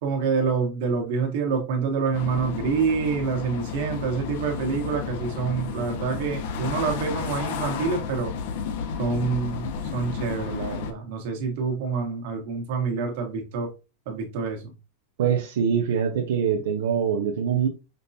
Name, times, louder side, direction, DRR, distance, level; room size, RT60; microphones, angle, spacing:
voice 1, 0.0-8.3 9.0-13.7 14.0-14.7, right 5 dB, 60° right, 1.3 m, -27 dB
sound 1, 2.1-10.9, left 6 dB, 60° left, 0.6 m, -32 dB
voice 2, 15.2-17.7, right 7 dB, 85° right, 0.6 m, -23 dB
5.2 x 2.2 x 2.7 m
supercardioid pair, 150°, 0 cm